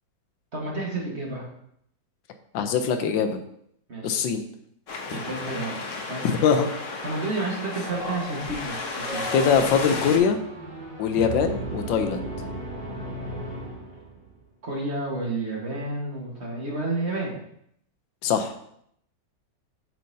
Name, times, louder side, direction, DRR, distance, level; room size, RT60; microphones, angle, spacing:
voice 1, 0.5-1.5 3.9-4.2 5.1-5.7 6.1-6.6 7.0-9.2 14.6-17.4, right 2 dB, 40° right, -3 dB, 1.6 m, -30 dB
voice 2, 2.5-3.4 4.0-4.4 6.2-6.7 9.3-10.4 11.0-12.3 18.2-18.5, left 6 dB, 90° left, 7 dB, 1.4 m, -22 dB
Wind, 4.9-10.2, left 3 dB, 50° left, 1.1 m, -33 dB
sound 1, 8.8-14.3, right 1 dB, 75° right, 3.0 m, -36 dB
7.5 x 5.8 x 2.7 m, 0.71 s
omnidirectional pair, 2.0 m